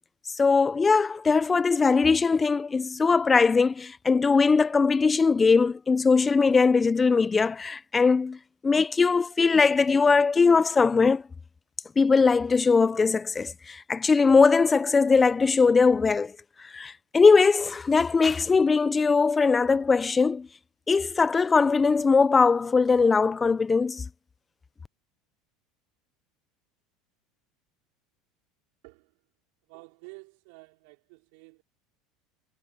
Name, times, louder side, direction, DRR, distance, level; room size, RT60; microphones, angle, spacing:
voice 1, 0.3-8.4 8.6-11.2 12.0-16.3 16.6-20.5 20.9-24.1, left 4 dB, 20° left, 0.6 m, -21 dB
voice 2, 28.8-29.1 29.7-31.6, right 33 dB, 70° right, 5.2 m, -50 dB
hypercardioid pair, 90°, 0 cm